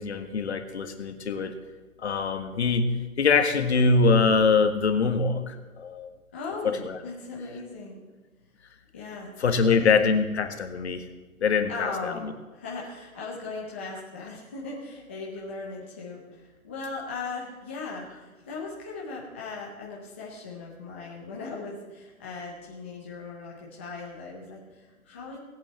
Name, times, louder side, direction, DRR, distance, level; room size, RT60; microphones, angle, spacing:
voice 1, 0.0-1.5 2.0-2.9 3.2-6.1 6.8-7.0 9.4-11.1 11.4-12.1, left 4 dB, 50° left, 7 dB, 1.7 m, -23 dB
voice 2, 6.3-8.0 8.9-9.9 11.7-25.4, left 3 dB, 10° left, -5 dB, 0.7 m, -38 dB
18.0 x 8.6 x 7.6 m, 1.2 s
hypercardioid pair, 165°, 43 cm